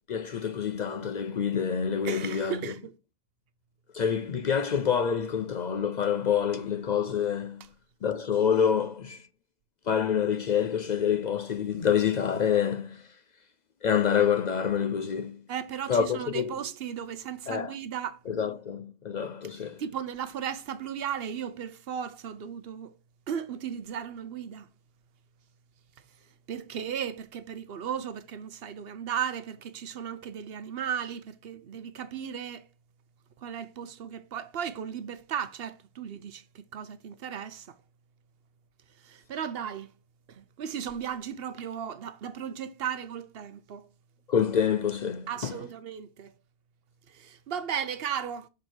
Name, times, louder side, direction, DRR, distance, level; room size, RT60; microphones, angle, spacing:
voice 1, 0.1-2.6 3.9-7.6 8.0-9.2 9.9-13.0 13.8-15.4 15.9-16.6 17.5-17.7 18.3-19.8 44.3-45.6, left 7 dB, 55° left, 0.5 m, -27 dB
voice 2, 2.0-2.9 15.5-18.2 19.8-22.9 23.3-24.7 26.5-32.7 33.4-37.8 39.0-39.9 40.3-43.9 45.3-46.3 47.1-48.5, right 8 dB, 70° right, 0.9 m, -36 dB
6.6 x 4.7 x 4.4 m
omnidirectional pair, 1.1 m